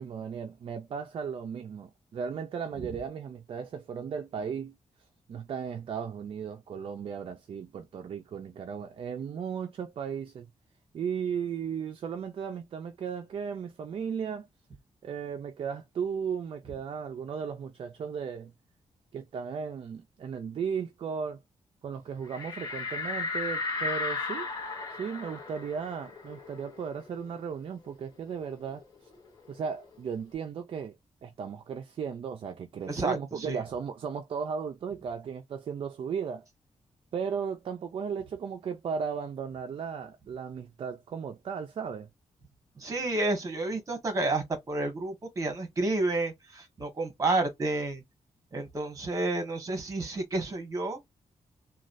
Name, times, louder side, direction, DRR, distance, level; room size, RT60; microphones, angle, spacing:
voice 1, 0.0-4.8 5.3-10.5 10.9-14.5 15.0-18.5 19.1-21.4 21.8-24.5 25.0-29.1 29.5-31.0 31.2-36.4 37.1-42.1, right 6 dB, 50° right, 0.4 m, -36 dB
sound 1, 22.3-27.5 27.8-27.9 28.3-29.9, left 3 dB, 35° left, 1.0 m, -35 dB
voice 2, 32.9-33.6 42.8-48.0 48.5-51.0, right 2 dB, 30° right, 1.2 m, -30 dB
3.1 x 2.3 x 2.4 m
wide cardioid pair, 175°, 12 cm